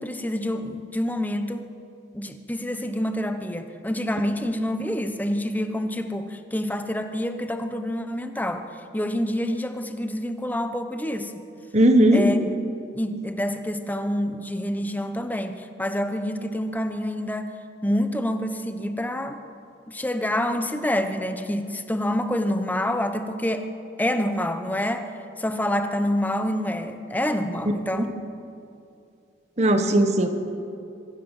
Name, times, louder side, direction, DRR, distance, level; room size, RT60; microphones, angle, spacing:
voice 1, 0.0-1.6 2.1-8.7 8.9-11.4 12.1-12.6 12.9-17.5 17.8-19.4 19.9-23.7 24.0-25.1 25.4-28.1, left 1 dB, 10° left, 7 dB, 1.1 m, -27 dB
voice 2, 11.7-12.2 27.9-28.0 29.6-30.3, right 1 dB, 35° right, 7 dB, 1.6 m, -18 dB
24.0 x 15.0 x 7.4 m, 2.6 s
head